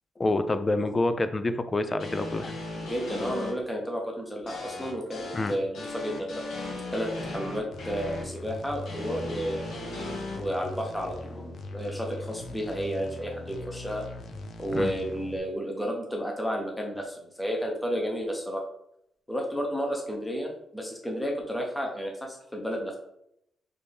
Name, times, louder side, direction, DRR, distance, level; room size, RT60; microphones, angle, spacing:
voice 1, 0.2-2.6 5.3-5.5 14.7-14.9, left 2 dB, 20° left, 10 dB, 0.3 m, -27 dB
sound 1, 2.0-3.5 4.5-8.2 8.9-10.4, left 2 dB, 75° left, 1.7 m, -37 dB
voice 2, 2.7-6.4 6.9-9.7 10.4-14.0 14.6-18.6 19.3-23.0, equal, 5° left, 0 dB, 0.8 m, -32 dB
sound 2, 7.7-15.4, left 2 dB, 60° left, 0.7 m, -41 dB
4.2 x 3.3 x 3.5 m, 0.75 s
wide cardioid pair, 145°, 0 cm